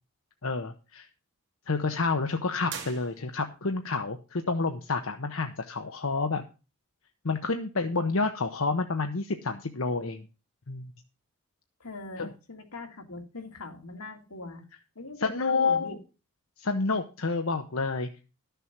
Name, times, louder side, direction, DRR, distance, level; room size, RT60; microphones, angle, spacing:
voice 1, 0.4-1.1 1.7-6.4 7.2-10.3 10.7-10.9 12.2-12.3 15.2-15.9 16.6-18.2, left 3 dB, 65° left, 6 dB, 0.9 m, -29 dB
sound 1, 2.7-3.7, right 7 dB, 55° right, 2.7 m, -42 dB
voice 2, 11.8-14.6 15.0-16.0, left 3 dB, 80° left, 4 dB, 2.2 m, -41 dB
12.5 x 6.9 x 6.0 m, 0.32 s
head